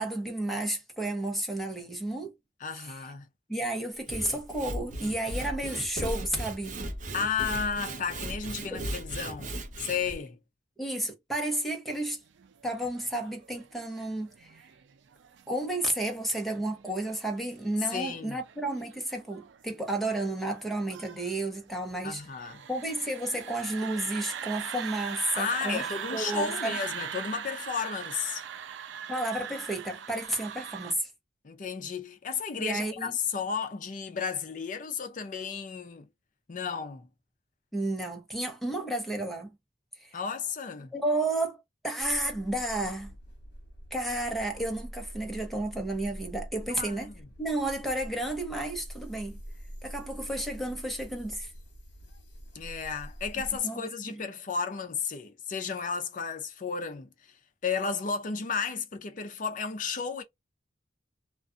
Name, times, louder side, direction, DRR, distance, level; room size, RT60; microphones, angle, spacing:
voice 1, 0.0-2.3 2.8-3.0 3.5-6.8 8.7-8.8 10.8-12.2 12.6-14.6 15.5-22.2 22.7-25.9 26.1-26.8 29.1-31.1 32.6-33.1 37.7-39.5 40.0-40.2 40.9-43.1 43.9-47.1 47.4-49.4 49.8-51.5 53.6-54.1, right 1 dB, ahead, 0.8 m, -32 dB
voice 2, 2.6-3.3 7.1-10.4 17.9-18.4 22.0-22.6 25.3-28.4 31.4-36.1 36.5-37.1 40.1-40.9 46.7-47.1 52.5-57.4 57.6-60.2, left 6 dB, 45° left, 0.5 m, -33 dB
Sawing / Wood, 3.9-10.2, right 1 dB, 45° right, 0.6 m, -37 dB
sound 1, 12.1-30.9, right 8 dB, 85° right, 0.4 m, -41 dB
sound 2, 42.0-53.6, equal, 65° left, 1.0 m, -45 dB
2.4 x 2.4 x 2.4 m
head